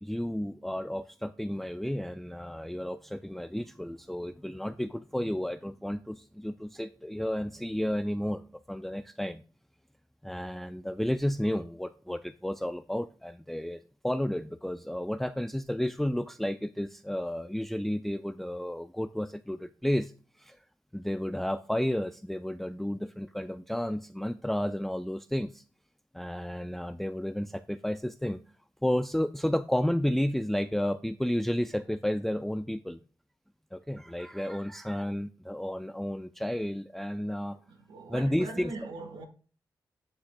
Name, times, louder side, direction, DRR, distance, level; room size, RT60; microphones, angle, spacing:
voice 1, 0.0-9.4 10.2-20.1 20.4-20.6 20.9-25.6 26.1-28.4 28.8-33.0 33.7-37.6 38.1-38.7, equal, 5° left, 0.4 m, -32 dB
voice 2, 37.7-39.3, right 3 dB, 80° right, 1.4 m, -41 dB
11.5 x 6.9 x 2.3 m
cardioid pair, 55°, 8 cm